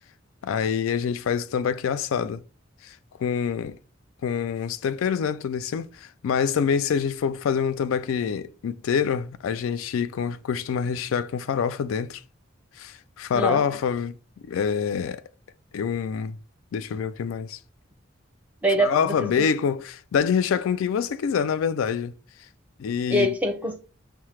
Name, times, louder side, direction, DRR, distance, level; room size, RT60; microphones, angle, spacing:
voice 1, 0.4-2.4 3.2-3.8 4.2-5.9 6.2-12.2 12.8-14.1 14.4-15.2 15.7-16.4 16.7-17.6 18.8-22.1 22.8-23.3, left 7 dB, 90° left, 0.3 m, -26 dB
voice 2, 13.3-13.8 18.6-19.5 23.1-23.8, equal, 5° right, 0.5 m, -25 dB
5.6 x 2.0 x 3.1 m
head